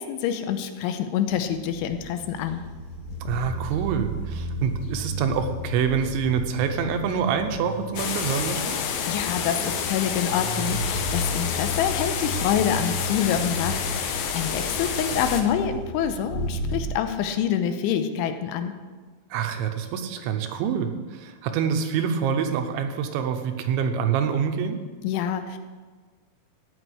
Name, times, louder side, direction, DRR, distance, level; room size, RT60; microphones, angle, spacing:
voice 1, 0.0-2.7 9.1-18.8 25.0-25.6, left 9 dB, 90° left, 8 dB, 3.2 m, -26 dB
sound 1, 1.3-17.0, equal, 40° left, 2.9 m, -34 dB
voice 2, 3.2-8.8 19.3-24.8, right 7 dB, 80° right, 6 dB, 3.1 m, -26 dB
sound 2, 8.0-15.4, left 7 dB, 70° left, 2.3 m, -29 dB
14.5 x 5.5 x 9.5 m, 1.4 s
omnidirectional pair, 5.6 m